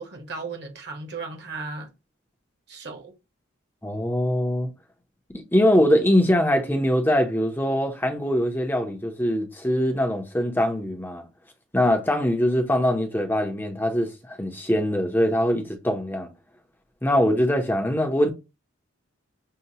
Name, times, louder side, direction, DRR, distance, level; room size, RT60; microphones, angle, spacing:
voice 1, 0.0-1.9 2.7-3.1, right 3 dB, 50° right, 1.3 m, -36 dB
voice 2, 3.8-4.7 5.5-11.2 11.7-16.3 17.0-18.3, equal, 10° left, 0.7 m, -22 dB
6.6 x 2.3 x 2.8 m
head